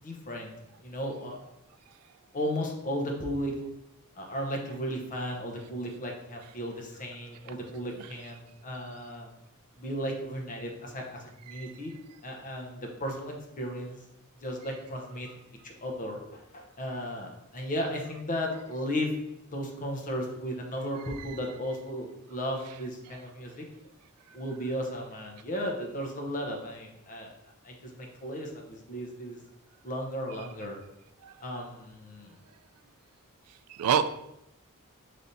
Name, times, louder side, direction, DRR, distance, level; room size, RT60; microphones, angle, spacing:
voice 1, 0.0-0.6 0.8-1.4 2.3-3.5 4.2-9.3 9.8-11.9 12.2-14.0 14.4-15.3 15.6-19.1 19.5-23.7 24.3-27.3 27.6-29.4 29.8-30.8 31.4-32.3, equal, 35° left, 0.8 m, -35 dB
voice 2, 33.7-34.1, right 8 dB, 80° right, 0.3 m, -27 dB
5.6 x 3.3 x 2.6 m
head